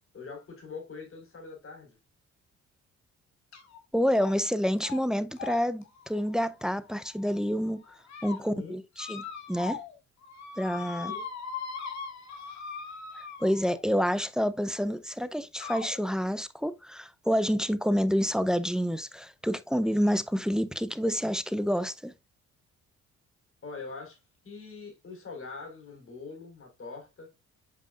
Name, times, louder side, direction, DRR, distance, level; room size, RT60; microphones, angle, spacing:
voice 1, 0.1-1.9 8.3-8.8 11.1-11.3 23.6-27.3, left 4 dB, 45° left, 4.5 m, -43 dB
sound 1, 3.5-3.8 4.2-4.5 4.8-5.0 5.4-7.3 7.8-8.4 9.0-10.0 10.2-13.8 14.8-14.9 15.6-15.9, left 5 dB, 65° left, 2.2 m, -40 dB
voice 2, 3.9-7.9 8.2-9.8 10.6-11.1 13.4-22.1, equal, ahead, 0.6 m, -28 dB
7.7 x 5.3 x 2.4 m
cardioid pair, 90°, 30 cm